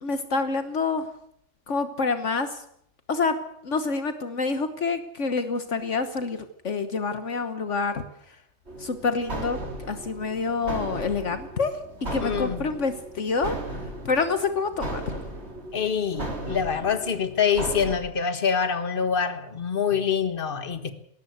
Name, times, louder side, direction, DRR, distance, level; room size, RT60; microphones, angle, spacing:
voice 1, 0.0-1.1 1.7-2.6 3.1-3.4 3.6-8.0 8.8-9.6 9.9-11.7 12.1-13.6 14.0-15.2, left 4 dB, 65° left, 1.5 m, -27 dB
sound 1, 8.7-18.0, right 1 dB, 55° right, 4.0 m, -36 dB
voice 2, 12.2-12.7 15.7-20.9, left 7 dB, 45° left, 1.8 m, -25 dB
20.5 x 18.0 x 8.0 m
omnidirectional pair, 1.3 m